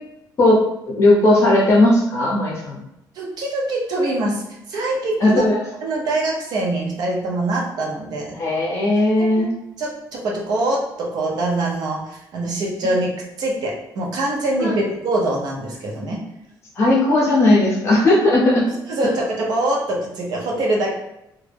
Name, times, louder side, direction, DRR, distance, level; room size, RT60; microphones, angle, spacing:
voice 1, 0.4-2.8 5.2-5.6 8.3-9.5 14.6-14.7 16.8-18.7, left 1 dB, 35° left, -4 dB, 0.7 m, -16 dB
voice 2, 3.2-4.4 4.7-5.5 5.8-8.4 9.2-9.5 9.8-13.1 13.4-16.2 18.9-20.9, right 2 dB, 55° right, -2 dB, 0.6 m, -23 dB
2.2 x 2.0 x 3.3 m, 0.84 s
cardioid pair, 180°, 8 cm